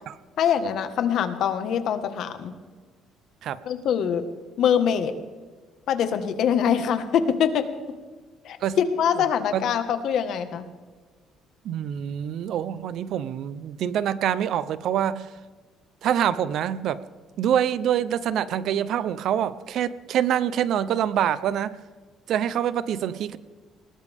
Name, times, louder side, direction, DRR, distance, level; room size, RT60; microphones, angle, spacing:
voice 1, 0.4-2.5 3.6-4.2 4.6-5.1 5.9-7.6 8.4-10.7, left 8 dB, 60° left, 9 dB, 1.6 m, -24 dB
voice 2, 11.6-15.3 16.0-17.0 17.4-21.8 22.3-23.4, right 10 dB, 60° right, 15 dB, 0.7 m, -25 dB
20.5 x 19.5 x 3.6 m, 1.4 s
cardioid pair, 145°, 0 cm